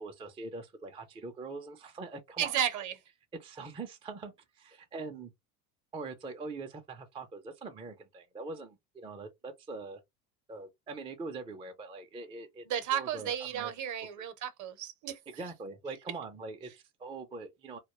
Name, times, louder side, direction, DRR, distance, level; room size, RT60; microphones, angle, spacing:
voice 1, 0.0-2.6 3.3-5.3 5.9-10.0 10.5-12.6 12.9-13.7 14.2-14.3 15.3-17.8, right 3 dB, 15° right, 0.3 m, -43 dB
voice 2, 2.4-2.9 12.7-15.2, right 9 dB, 40° right, 0.7 m, -33 dB
2.2 x 2.1 x 2.9 m
supercardioid pair, 100°, 45 cm